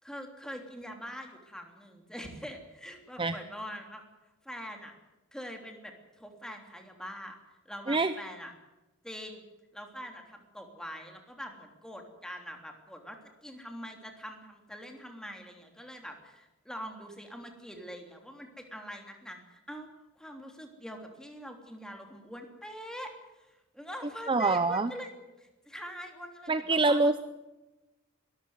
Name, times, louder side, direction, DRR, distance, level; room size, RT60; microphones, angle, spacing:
voice 1, 0.0-4.0 4.4-4.9 5.3-7.4 7.6-8.5 9.0-9.4 9.7-19.9 20.2-27.1, equal, 5° left, 3 dB, 3.2 m, -44 dB
voice 2, 24.3-24.9 26.5-27.2, right 3 dB, 25° right, 11 dB, 0.7 m, -25 dB
22.0 x 14.0 x 9.6 m, 1.1 s
head